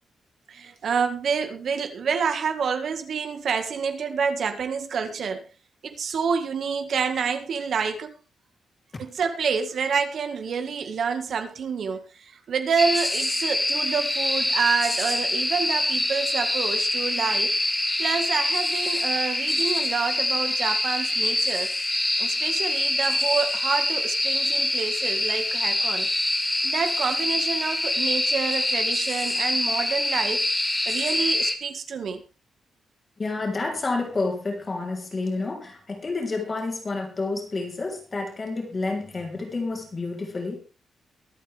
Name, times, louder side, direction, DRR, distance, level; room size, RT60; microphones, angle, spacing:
voice 1, 0.5-5.4 5.8-8.1 9.0-17.6 18.0-21.7 22.2-30.5 30.9-32.2, right 6 dB, 55° right, 1.8 m, -28 dB
sound 1, 12.8-31.6, left 1 dB, 10° left, 1.6 m, -25 dB
voice 2, 33.2-40.6, left 3 dB, 25° left, 3.5 m, -29 dB
23.5 x 8.4 x 3.5 m
wide cardioid pair, 165°, 0 cm